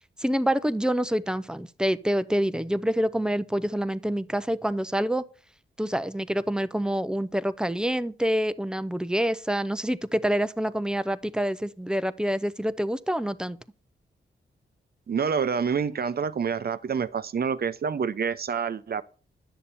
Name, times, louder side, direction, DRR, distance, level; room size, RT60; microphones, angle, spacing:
voice 1, 0.2-5.2 5.8-13.6, equal, 5° right, 0.6 m, -27 dB
voice 2, 15.1-19.0, right 6 dB, 50° right, 0.7 m, -27 dB
10.0 x 6.9 x 4.2 m
cardioid pair, 55°, 20 cm